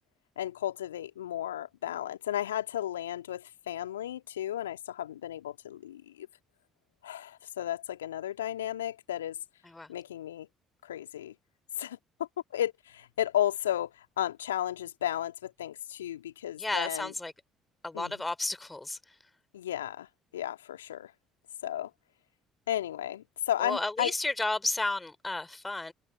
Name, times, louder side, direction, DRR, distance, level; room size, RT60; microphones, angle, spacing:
voice 1, 0.4-6.3 7.0-9.4 9.9-10.5 10.8-11.3 11.8-12.0 12.5-13.9 14.2-17.1 17.9-18.2 19.5-20.1 20.3-21.1 21.6-21.9 22.7-24.1, left 11 dB, 80° left, 2.8 m, -33 dB
voice 2, 16.6-17.3 17.8-19.0 23.6-25.9, left 2 dB, 15° left, 4.3 m, -32 dB
figure-of-eight pair, 50°, 0 cm